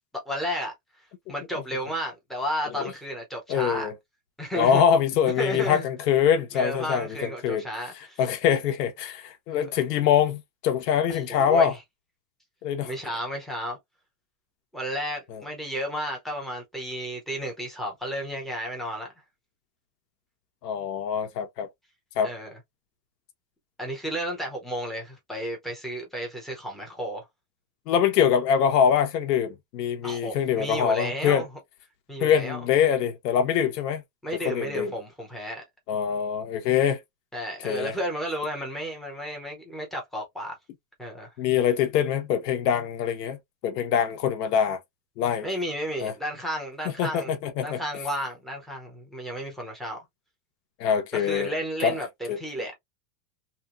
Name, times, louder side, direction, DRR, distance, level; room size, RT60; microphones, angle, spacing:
voice 1, 0.3-0.7 1.3-3.9 4.4-4.8 5.4-5.8 6.5-8.2 9.5-9.7 11.1-11.8 12.8-13.8 14.7-19.1 22.2-22.6 23.8-27.3 30.0-31.5 32.1-32.6 34.2-35.6 37.3-40.6 41.0-41.3 45.4-47.3 47.6-50.0 51.1-52.8, equal, ahead, 0.5 m, -32 dB
voice 2, 3.5-3.9 4.5-7.6 8.2-11.7 12.6-12.9 15.3-15.4 20.6-21.7 22.2-22.3 27.9-31.4 32.2-34.0 34.3-34.9 35.9-37.0 37.6-37.9 41.4-44.8 45.2-45.5 46.0-46.1 47.0-47.8 50.8-51.5 51.8-52.0 52.3-52.4, left 8 dB, 80° left, 1.0 m, -24 dB
3.0 x 2.9 x 2.4 m
supercardioid pair, 160°, 48 cm